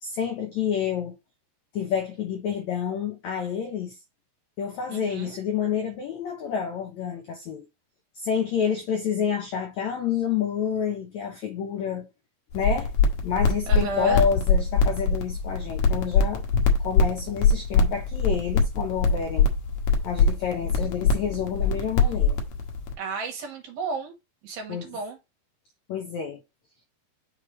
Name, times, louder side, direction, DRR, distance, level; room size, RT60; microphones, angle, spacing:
voice 1, 0.0-1.1 1.7-3.9 4.6-7.7 8.1-12.1 12.5-12.9 13.2-16.4 16.8-19.5 20.0-22.4 24.7-24.9 25.9-26.4, left 7 dB, 85° left, 1.6 m, -28 dB
voice 2, 4.9-5.4 13.7-14.2 23.0-24.1 24.4-25.2, right 4 dB, 65° right, 3.4 m, -33 dB
sound 1, 12.5-22.9, left 4 dB, 70° left, 1.8 m, -23 dB
6.5 x 3.3 x 4.8 m
omnidirectional pair, 4.7 m